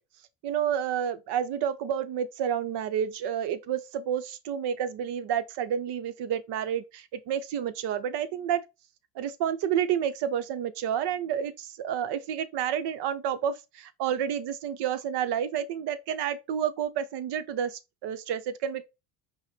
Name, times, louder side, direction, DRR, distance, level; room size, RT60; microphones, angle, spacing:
voice 1, 0.4-8.6 9.2-18.8, right 9 dB, 60° right, 0.8 m, -30 dB
5.5 x 2.2 x 4.3 m
supercardioid pair, 90°, 45 cm